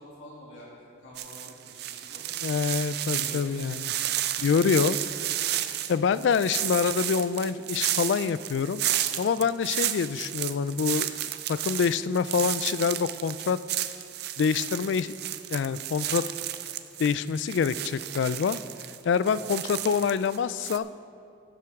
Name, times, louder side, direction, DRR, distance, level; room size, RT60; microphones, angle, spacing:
voice 1, 0.0-2.2 3.1-4.1 9.4-9.5 19.0-19.8, equal, 90° left, -6 dB, 2.4 m, -48 dB
sound 1, 1.2-20.4 20.6-20.8, right 12 dB, 60° right, 0.4 m, -32 dB
voice 2, 2.4-3.9 4.4-5.0 5.9-8.8 9.2-11.1 11.5-13.6 14.4-15.1 15.5-16.2 17.0-18.6 19.0-20.9, left 6 dB, 70° left, 15 dB, 0.3 m, -26 dB
16.5 x 7.7 x 3.6 m, 2.3 s
head